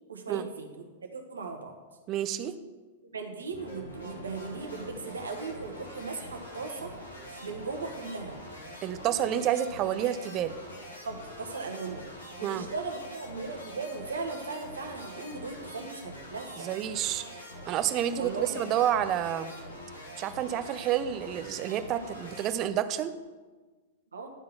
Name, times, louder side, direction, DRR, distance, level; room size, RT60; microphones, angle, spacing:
voice 1, 0.1-1.7 3.1-6.9 7.3-8.4 11.0-12.0 12.4-16.7 18.2-18.6 24.1-24.3, right 4 dB, 80° right, 4 dB, 1.1 m, -38 dB
voice 2, 2.1-2.6 8.8-10.5 12.4-12.7 16.6-17.2 17.7-19.5 20.2-23.1, right 10 dB, 35° right, 11 dB, 0.6 m, -29 dB
sound 1, 3.5-22.5, equal, 80° left, 1.9 m, -45 dB
10.5 x 3.8 x 5.8 m, 1.3 s
hypercardioid pair, 105°, 0 cm